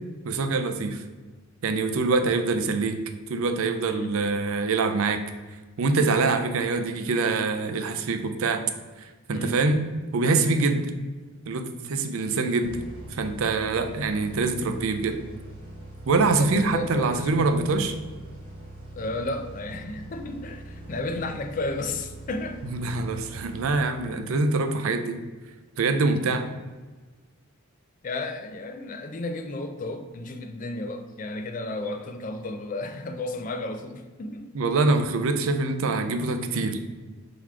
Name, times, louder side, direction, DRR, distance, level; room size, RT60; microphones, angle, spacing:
voice 1, 0.2-1.0 1.6-3.0 3.3-5.2 5.8-8.6 9.3-9.8 10.1-10.8 11.5-12.8 13.1-15.2 16.1-17.9 22.7-25.2 25.8-26.5 34.5-36.8, right 3 dB, 70° right, 8 dB, 0.4 m, -24 dB
voice 2, 9.3-9.6 16.4-17.3 18.9-22.6 28.0-34.5, left 2 dB, 35° left, 7 dB, 0.3 m, -33 dB
sound 1, 12.6-24.3, right 1 dB, 25° right, 0.9 m, -42 dB
4.0 x 2.9 x 4.4 m, 1.3 s
head